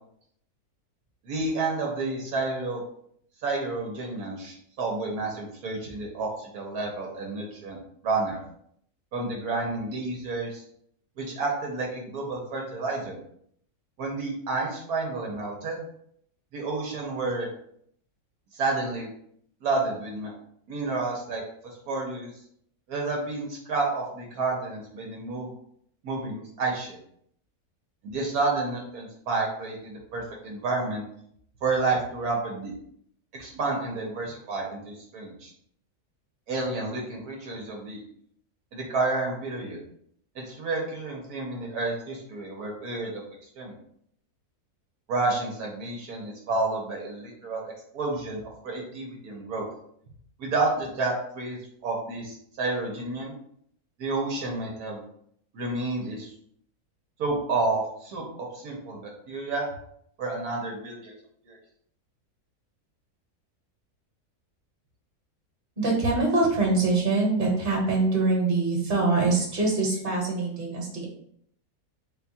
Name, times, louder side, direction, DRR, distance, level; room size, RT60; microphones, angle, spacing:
voice 1, 1.2-2.8 3.4-7.8 8.0-8.4 9.1-10.6 11.2-13.2 14.0-15.8 16.5-17.5 18.5-19.1 19.6-20.3 20.7-21.4 21.9-22.3 22.9-25.5 26.0-27.0 28.0-31.0 31.6-32.7 33.3-35.5 36.5-38.0 38.7-39.8 40.3-43.2 43.6-43.7 45.1-49.6 50.4-53.3 54.0-55.0 55.5-56.3 57.2-59.7 60.2-61.1 61.4-61.6, right 3 dB, 75° right, -1 dB, 1.4 m, -30 dB
voice 2, 65.8-71.1, right 3 dB, 35° right, -2 dB, 1.4 m, -24 dB
4.1 x 2.3 x 4.2 m, 0.68 s
omnidirectional pair, 1.6 m